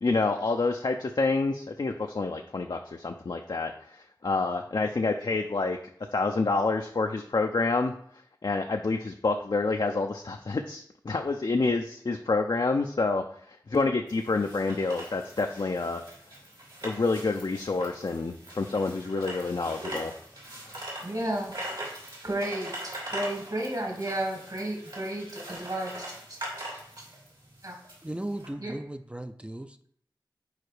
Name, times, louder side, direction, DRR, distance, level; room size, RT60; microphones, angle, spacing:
voice 1, 0.0-5.8 6.1-7.9 8.4-16.0 16.8-20.1, left 3 dB, 60° left, 4 dB, 0.4 m, -28 dB
sound 1, 14.1-28.5, right 1 dB, 70° right, 2.4 m, -41 dB
voice 2, 21.0-21.5 22.2-26.4 27.0-27.1 27.6-27.8 28.6-28.7, right 1 dB, 50° right, 0 dB, 1.8 m, -33 dB
voice 3, 28.0-29.8, right 1 dB, 15° right, 8 dB, 0.4 m, -36 dB
4.8 x 4.3 x 4.7 m, 0.63 s
wide cardioid pair, 50°, 8 cm